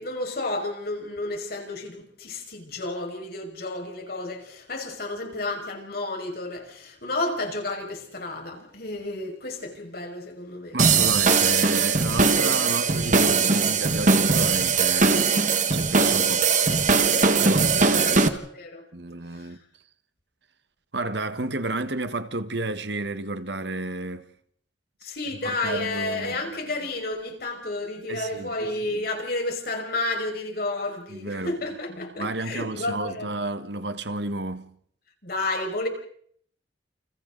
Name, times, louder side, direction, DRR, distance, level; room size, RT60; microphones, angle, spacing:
voice 1, 0.0-10.8 18.1-18.8 19.4-19.5 25.0-33.3 35.2-35.9, left 2 dB, 55° left, 5.9 m, -31 dB
voice 2, 10.7-15.4 15.7-16.5 17.4-18.4 18.9-19.6 20.9-24.3 25.4-26.4 28.1-28.5 31.1-31.6 32.2-34.7, right 2 dB, 65° right, 1.5 m, -31 dB
sound 1, 10.8-18.3, right 4 dB, 45° right, 1.7 m, -20 dB
29.5 x 29.5 x 4.0 m
head